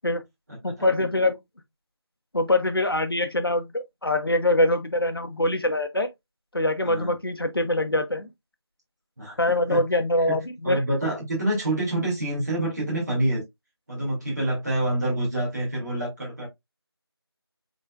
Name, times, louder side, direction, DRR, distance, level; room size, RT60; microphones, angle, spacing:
voice 1, 0.6-1.4 2.3-6.1 6.5-8.3 9.4-10.8, left 1 dB, 60° left, 1.1 m, -24 dB
voice 2, 6.8-7.1 9.2-9.4 9.7-9.8 10.3-10.4 10.6-13.4 13.9-16.5, right 1 dB, 40° right, 2.5 m, -27 dB
5.2 x 4.1 x 2.4 m
figure-of-eight pair, 175°, 14 cm